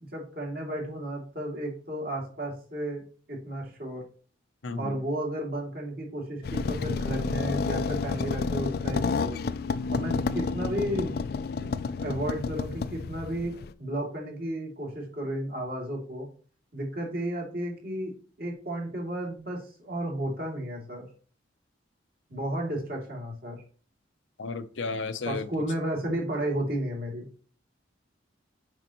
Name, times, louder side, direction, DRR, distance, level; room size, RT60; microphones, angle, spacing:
voice 1, 0.1-3.0 3.3-4.0 4.8-9.4 9.9-11.1 11.6-11.7 12.0-13.5 13.8-16.3 16.7-21.0 22.3-23.6 25.3-27.2, right 1 dB, 55° right, 2.6 m, -33 dB
voice 2, 4.6-5.0 9.9-10.2 24.4-25.5, left 4 dB, 90° left, 0.7 m, -33 dB
sound 1, 6.4-13.7, left 4 dB, 55° left, 0.3 m, -30 dB
7.7 x 5.0 x 3.0 m
head